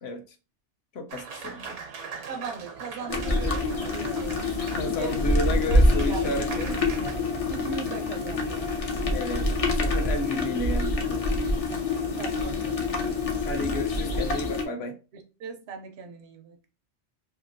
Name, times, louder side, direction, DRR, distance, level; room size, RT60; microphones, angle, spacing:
voice 1, 0.9-1.8 4.7-6.8 9.1-11.4 13.5-15.0, left 2 dB, 70° left, 0.8 m, -32 dB
Applause, 1.1-7.1, right 5 dB, 85° right, 1.1 m, -41 dB
voice 2, 2.3-4.4 4.9-5.2 5.7-5.8 6.1-6.3 7.5-8.7 12.2-12.8 15.1-16.6, right 6 dB, 70° right, 0.8 m, -38 dB
sound 1, 3.1-14.6, left 2 dB, 45° left, 0.5 m, -26 dB
2.8 x 2.4 x 2.5 m
omnidirectional pair, 1.2 m